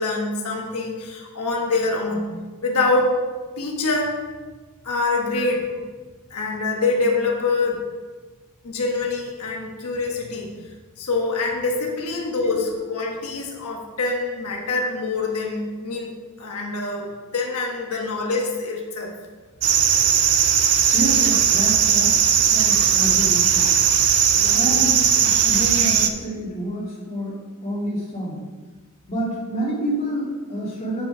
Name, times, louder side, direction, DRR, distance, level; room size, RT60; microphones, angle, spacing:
voice 1, 0.0-2.3 2.6-3.1 3.6-4.1 4.8-5.6 6.3-7.8 8.6-10.5 11.0-16.1 16.4-19.1 24.3-24.6, left 3 dB, 90° left, -1 dB, 1.4 m, -25 dB
sound 1, 19.6-26.1, right 8 dB, 85° right, 0.6 m, -18 dB
voice 2, 20.9-23.7 24.5-28.4 29.1-31.0, right 1 dB, 30° left, -6 dB, 2.6 m, -28 dB
9.0 x 5.2 x 4.9 m, 1.3 s
head